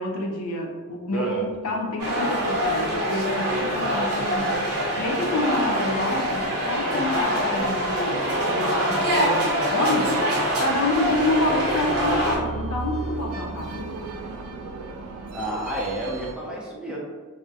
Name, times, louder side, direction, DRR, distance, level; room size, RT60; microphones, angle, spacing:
voice 1, 0.0-8.2 8.5-13.9, left 2 dB, 85° left, 1 dB, 0.4 m, -28 dB
voice 2, 1.1-1.5 15.3-17.0, right 2 dB, 5° right, -5 dB, 0.4 m, -29 dB
sound 1, 2.0-12.4, equal, 70° right, 0.7 m, -24 dB
sound 2, 10.9-16.3, right 3 dB, 90° right, 0.3 m, -35 dB
2.4 x 2.0 x 2.6 m, 1.4 s
head